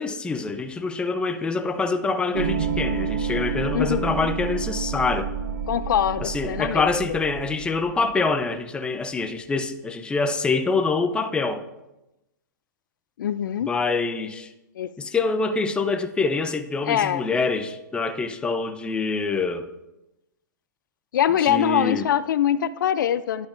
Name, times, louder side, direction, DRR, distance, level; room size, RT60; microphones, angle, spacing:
voice 1, 0.0-5.3 6.2-11.6 13.6-14.5 15.0-19.7 21.4-22.1, left 4 dB, 10° left, 0.4 m, -25 dB
sound 1, 2.3-8.4, right 6 dB, 70° right, 0.6 m, -29 dB
voice 2, 3.7-4.3 5.7-6.9 13.2-13.7 14.8-14.9 16.8-17.2 21.1-23.5, left 10 dB, 75° left, 0.4 m, -23 dB
11.0 x 5.8 x 2.5 m
hypercardioid pair, 130°, 11 cm